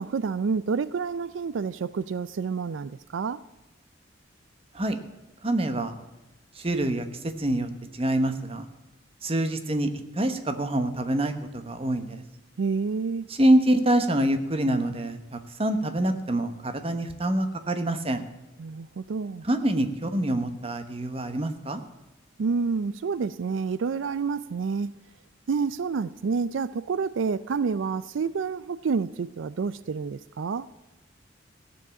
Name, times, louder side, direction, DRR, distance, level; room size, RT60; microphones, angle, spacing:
voice 1, 0.0-3.4 12.6-13.3 18.6-19.4 22.4-24.9 25.5-30.7, right 5 dB, 90° right, 0.4 m, -28 dB
voice 2, 5.4-5.9 6.5-8.7 9.2-12.2 13.3-18.2 19.4-21.8, right 1 dB, 30° right, 1.1 m, -26 dB
15.5 x 7.1 x 8.6 m
head